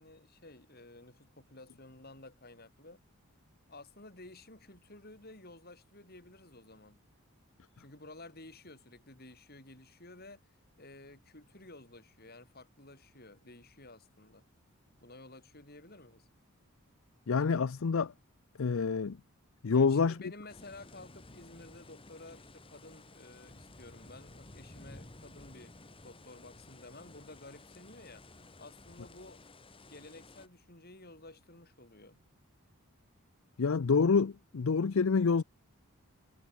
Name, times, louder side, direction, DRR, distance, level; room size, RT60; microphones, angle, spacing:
voice 1, 0.0-3.0 3.7-7.0 7.8-10.4 10.8-14.5 15.0-16.3 19.7-25.8 26.0-28.3 28.6-29.4 29.8-32.2, left 2 dB, 45° left, 6.6 m, -53 dB
voice 2, 17.3-18.1 18.6-19.2 19.6-20.2 33.6-35.4, left 5 dB, 65° left, 0.5 m, -27 dB
sound 1, 20.5-30.5, left 2 dB, 25° left, 1.9 m, -54 dB
head